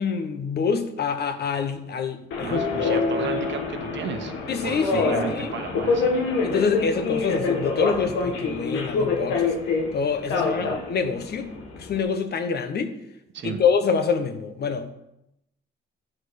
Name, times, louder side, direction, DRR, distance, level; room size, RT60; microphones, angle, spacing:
voice 1, 0.0-3.0 4.5-5.5 6.4-9.5 9.9-11.5 11.9-12.9 13.4-14.9, left 5 dB, 55° left, 8 dB, 1.0 m, -26 dB
Subway metro underground, 2.3-12.0, left 4 dB, 85° left, 1.5 m, -26 dB
voice 2, 2.4-4.3 4.6-6.1 10.4-10.7 13.3-13.6, right 7 dB, 65° right, 8 dB, 1.1 m, -34 dB
8.7 x 4.9 x 6.3 m, 0.85 s
cardioid pair, 90°, 20 cm